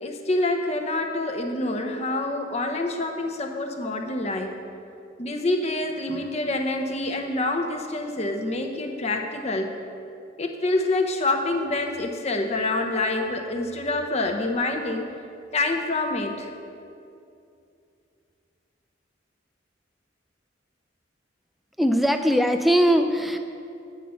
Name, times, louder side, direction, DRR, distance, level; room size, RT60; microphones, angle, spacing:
voice 1, 0.0-4.5 5.2-9.7 10.4-15.1 15.5-16.5, left 2 dB, 35° left, 4 dB, 0.8 m, -26 dB
voice 2, 21.8-23.4, equal, ahead, 6 dB, 0.4 m, -20 dB
8.4 x 5.3 x 7.7 m, 2.6 s
head